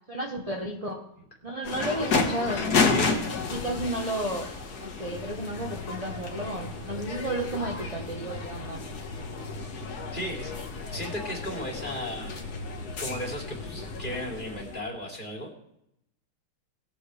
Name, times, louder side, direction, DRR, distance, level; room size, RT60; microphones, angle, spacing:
voice 1, 0.1-1.0 1.4-3.1 3.4-4.5 4.8-8.8, right 1 dB, 30° right, 1 dB, 0.6 m, -33 dB
Diving Board Close, 1.6-14.8, left 4 dB, 50° left, 1.7 m, -32 dB
voice 2, 2.8-3.2 10.1-10.5 10.9-12.5 13.0-15.5, equal, 20° left, -2 dB, 3.0 m, -35 dB
sound 1, 5.1-14.3, left 1 dB, 90° left, 2.4 m, -41 dB
20.5 x 7.9 x 3.3 m, 0.79 s
omnidirectional pair, 2.4 m